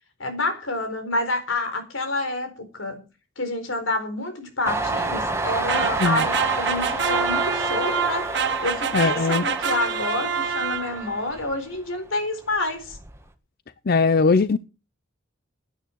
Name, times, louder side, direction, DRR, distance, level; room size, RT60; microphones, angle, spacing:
voice 1, 0.2-3.0 3.4-8.3 8.6-13.0, left 2 dB, 90° left, 4.4 m, -28 dB
Train, 4.6-12.1 12.4-13.3, right 2 dB, 15° right, 1.6 m, -29 dB
sound 1, 5.7-11.2, right 6 dB, 65° right, 1.3 m, -26 dB
voice 2, 8.9-9.4 13.9-14.6, left 4 dB, 50° left, 0.6 m, -19 dB
16.0 x 9.3 x 4.7 m
head